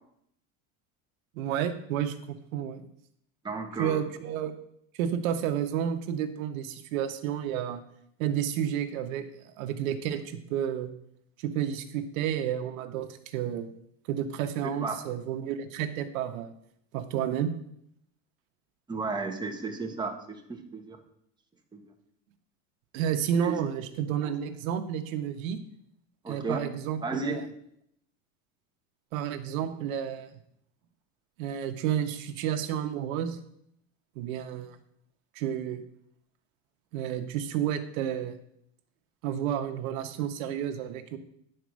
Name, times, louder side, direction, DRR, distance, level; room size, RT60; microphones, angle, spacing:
voice 1, 1.3-2.8 3.8-4.5 4.9-7.8 8.2-9.3 9.6-10.9 11.4-13.7 14.1-16.5 16.9-17.5 22.9-25.6 26.3-27.4 29.1-30.4 31.4-33.4 34.1-34.8 35.3-35.8 36.9-38.4 39.2-41.2, right 9 dB, 80° right, 8 dB, 1.1 m, -31 dB
voice 2, 3.4-4.0 14.8-14.9 18.9-21.0 21.7-21.8 23.4-23.6 26.2-26.6 27.0-27.4, right 4 dB, 10° right, 3 dB, 1.2 m, -33 dB
10.0 x 4.5 x 6.3 m, 0.72 s
supercardioid pair, 135°, 41 cm